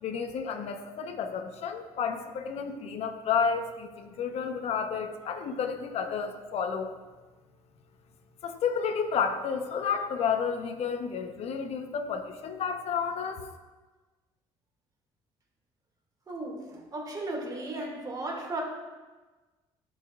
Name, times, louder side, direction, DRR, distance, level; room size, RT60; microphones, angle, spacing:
voice 1, 0.0-6.9 8.4-13.4, left 6 dB, 60° left, 5 dB, 1.0 m, -31 dB
voice 2, 16.3-18.6, right 2 dB, 30° right, 0 dB, 2.4 m, -35 dB
15.0 x 5.2 x 2.5 m, 1.2 s
supercardioid pair, 70°, 12 cm